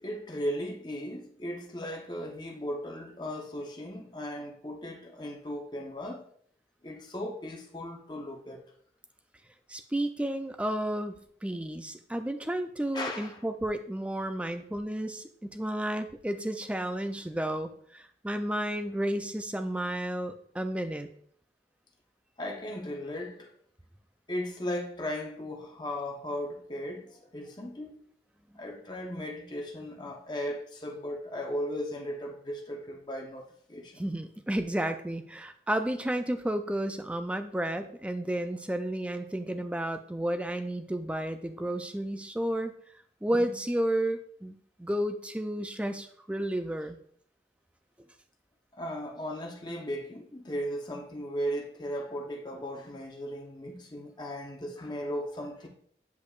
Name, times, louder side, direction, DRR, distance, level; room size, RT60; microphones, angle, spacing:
voice 1, 0.0-6.2 6.8-8.6 12.9-13.4 22.4-23.5 24.3-28.0 28.5-34.1 41.6-41.7 43.3-43.4 48.7-55.7, equal, 25° left, 0.9 m, -37 dB
voice 2, 9.7-21.1 34.0-42.7 43.2-47.0, right 1 dB, 5° right, 0.3 m, -32 dB
8.2 x 5.2 x 2.4 m
head